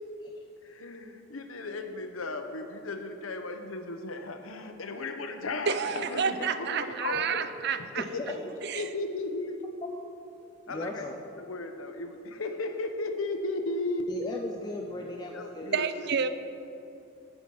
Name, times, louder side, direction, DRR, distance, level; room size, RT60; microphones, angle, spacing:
voice 1, 0.6-7.4 7.8-8.2 8.7-9.7 10.7-11.0 11.4-14.1 15.3-15.9, left 2 dB, 85° left, 1.0 m, -35 dB
voice 2, 5.7-8.0 8.6-8.9 15.7-16.3, right 6 dB, 55° right, 0.5 m, -29 dB
voice 3, 8.0-8.3 9.9-10.0 10.4-11.1 14.1-15.8, left 1 dB, 20° left, 0.6 m, -37 dB
14.0 x 5.9 x 5.5 m
head